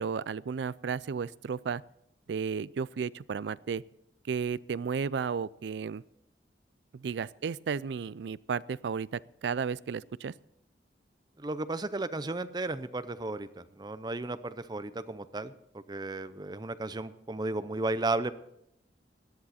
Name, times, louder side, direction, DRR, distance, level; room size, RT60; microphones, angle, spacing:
voice 1, 0.0-1.8 2.3-3.8 4.3-6.0 6.9-10.3, right 6 dB, 70° right, 20 dB, 0.4 m, -33 dB
voice 2, 11.4-18.3, right 2 dB, 25° right, 13 dB, 0.6 m, -34 dB
17.0 x 11.0 x 4.2 m, 0.79 s
head